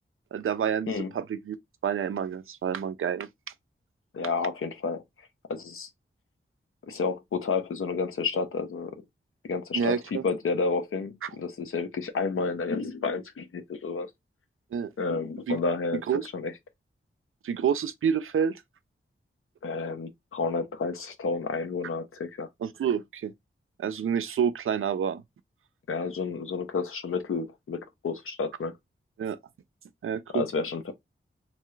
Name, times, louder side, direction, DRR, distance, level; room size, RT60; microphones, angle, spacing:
voice 1, 0.3-1.6 1.8-3.3 9.7-10.2 14.7-14.9 15.5-15.6 16.1-16.3 17.4-18.6 22.6-23.3 23.8-25.2 29.2-29.4 30.0-30.4, right 7 dB, 80° right, 0.4 m, -28 dB
voice 2, 4.1-5.0 5.5-5.9 6.9-9.0 9.4-14.1 15.0-16.0 16.3-16.5 19.6-22.5 25.9-28.7 30.3-30.9, left 4 dB, 80° left, 0.6 m, -30 dB
2.9 x 2.3 x 3.1 m
wide cardioid pair, 70°, 21 cm